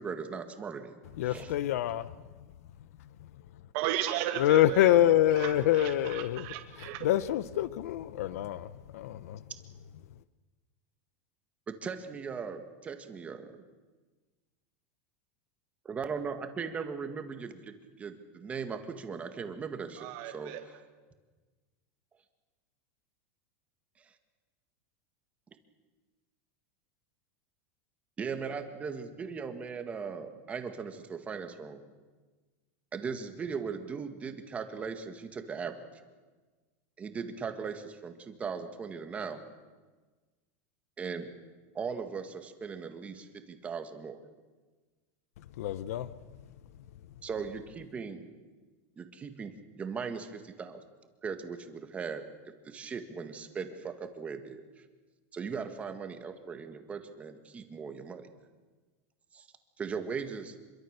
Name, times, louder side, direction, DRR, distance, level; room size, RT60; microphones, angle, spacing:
voice 1, 0.0-1.5 11.7-13.5 15.9-20.1 20.3-20.5 28.2-31.8 32.9-35.8 37.0-39.4 41.0-41.3 41.7-44.2 47.2-48.3 49.0-50.8 51.2-52.2 52.6-54.8 55.3-58.3 59.3-59.5 59.8-60.5, right 5 dB, 15° right, 1.8 m, -38 dB
voice 2, 1.2-2.1 4.4-6.4 7.0-9.4 45.6-46.1, left 12 dB, 75° left, 0.8 m, -26 dB
voice 3, 3.7-5.0 5.3-7.1 20.0-20.6, right 11 dB, 50° right, 1.7 m, -35 dB
26.0 x 23.0 x 6.7 m
supercardioid pair, 160°, 8 cm